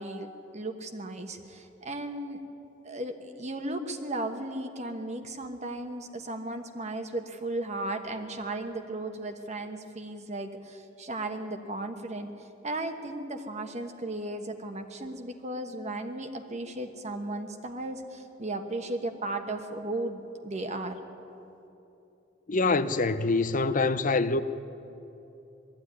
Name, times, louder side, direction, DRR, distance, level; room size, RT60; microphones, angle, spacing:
voice 1, 0.0-2.4 2.8-12.3 12.6-21.0, right 2 dB, 35° right, 1.2 m, -35 dB
voice 2, 22.5-24.4, left 3 dB, 45° left, 0.7 m, -25 dB
20.5 x 14.0 x 9.7 m
head